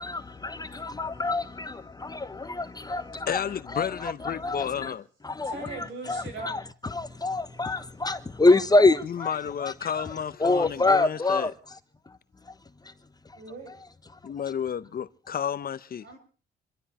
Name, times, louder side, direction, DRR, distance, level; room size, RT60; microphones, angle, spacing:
voice 1, 0.0-3.4 3.7-3.9 4.2-4.9 5.2-5.5 6.1-9.3 9.6-10.0 10.4-11.5, left 2 dB, 20° left, 1.1 m, -25 dB
voice 2, 3.3-5.0 9.0-11.5 14.2-16.0, left 8 dB, 50° left, 0.9 m, -32 dB
voice 3, 5.4-6.6 13.3-13.7 16.0-16.2, right 3 dB, 75° right, 7.7 m, -39 dB
26.5 x 12.5 x 4.3 m
cardioid pair, 90°, 20 cm